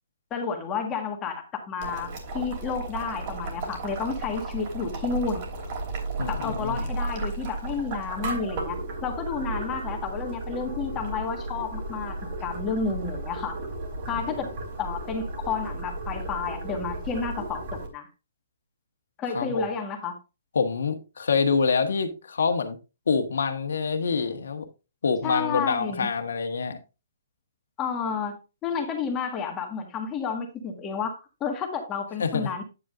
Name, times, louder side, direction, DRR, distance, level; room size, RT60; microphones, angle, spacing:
voice 1, 0.3-5.4 6.3-13.6 14.1-14.5 14.8-18.1 19.2-20.2 25.2-26.1 27.8-32.6, left 5 dB, 20° left, 3 dB, 1.7 m, -31 dB
Boiling, 1.8-17.9, right 2 dB, 40° right, 3.1 m, -34 dB
voice 2, 6.2-6.9 14.2-14.3 19.3-19.6 20.5-22.8 23.1-24.6 25.0-26.8 32.2-32.5, left 5 dB, 80° left, 5 dB, 1.4 m, -26 dB
9.3 x 7.7 x 2.6 m, 0.28 s
hypercardioid pair, 155°, 0 cm